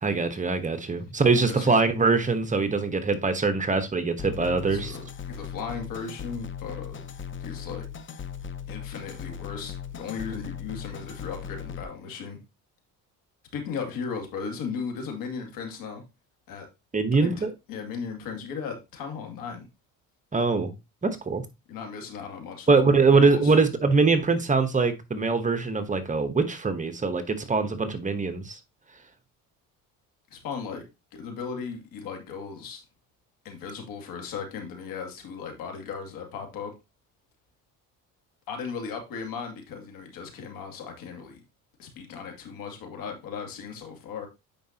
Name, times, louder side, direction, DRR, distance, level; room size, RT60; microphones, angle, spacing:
voice 1, 0.0-5.0 16.9-17.5 20.3-20.7 21.0-21.4 22.7-28.6, right 4 dB, 20° right, 1.0 m, -23 dB
voice 2, 1.3-1.8 4.7-7.0 7.4-7.8 8.7-12.4 13.5-16.0 16.5-16.7 17.2-19.6 21.7-23.6 30.3-30.8 31.1-32.8 33.4-36.7 38.5-41.4 41.8-44.3, left 5 dB, 70° left, 2.4 m, -37 dB
sound 1, 4.2-11.8, left 8 dB, 35° left, 0.8 m, -38 dB
9.2 x 4.9 x 2.8 m
cardioid pair, 100°, 35 cm